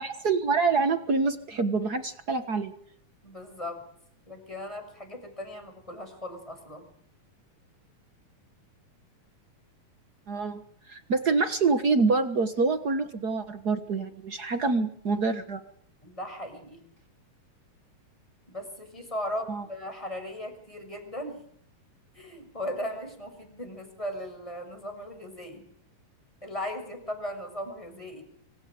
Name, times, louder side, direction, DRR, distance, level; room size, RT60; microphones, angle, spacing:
voice 1, 0.0-2.7 10.3-10.6 10.9-15.6 19.5-19.6, right 4 dB, 55° right, 8 dB, 1.1 m, -26 dB
voice 2, 3.2-3.8 4.3-6.9 16.0-16.8 18.5-21.4 22.1-25.6 26.4-28.2, left 1 dB, 10° left, 4 dB, 6.3 m, -37 dB
25.5 x 25.0 x 5.1 m, 0.64 s
omnidirectional pair, 3.8 m